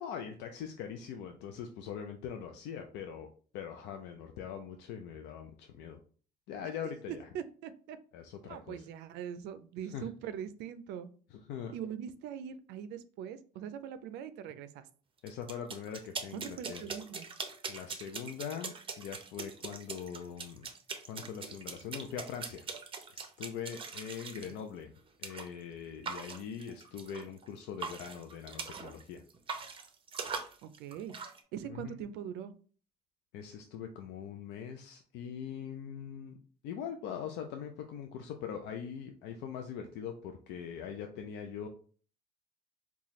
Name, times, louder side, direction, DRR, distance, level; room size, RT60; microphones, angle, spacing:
voice 1, 0.0-3.3 3.5-6.0 6.5-7.3 8.1-8.8 9.8-10.1 11.3-11.7 15.2-16.8 17.7-20.7 21.1-22.7 23.1-24.9 25.2-29.2 31.7-31.9 33.3-36.4 36.6-41.7, left 8 dB, 90° left, 4 dB, 0.4 m, -42 dB
voice 2, 7.1-8.0 8.4-11.1 11.7-14.8 16.3-17.3 24.4-24.5 30.6-31.2 31.5-32.5, right 9 dB, 90° right, 11 dB, 0.4 m, -42 dB
sound 1, 15.3-24.5 25.2-25.5 26.0-27.5 27.8-29.0 29.3-31.4, right 5 dB, 30° right, 0.6 m, -42 dB
4.0 x 2.3 x 3.0 m, 0.42 s
cardioid pair, 110°, 17 cm